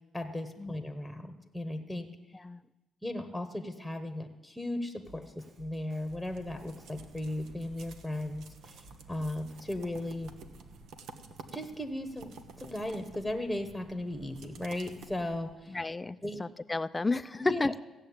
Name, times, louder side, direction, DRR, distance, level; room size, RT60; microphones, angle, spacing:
voice 1, 0.1-2.1 3.0-10.3 11.5-15.8 16.2-16.4 17.4-17.8, left 1 dB, ahead, 6 dB, 1.2 m, -37 dB
Drum kit, 5.0-10.7, right 2 dB, 55° right, 6.9 m, -56 dB
sound 1, 5.9-15.7, right 4 dB, 80° right, 1.2 m, -51 dB
voice 2, 15.7-17.8, left 3 dB, 20° left, 15 dB, 0.4 m, -32 dB
15.5 x 7.6 x 8.7 m, 1.1 s
cardioid pair, 90°, 0 cm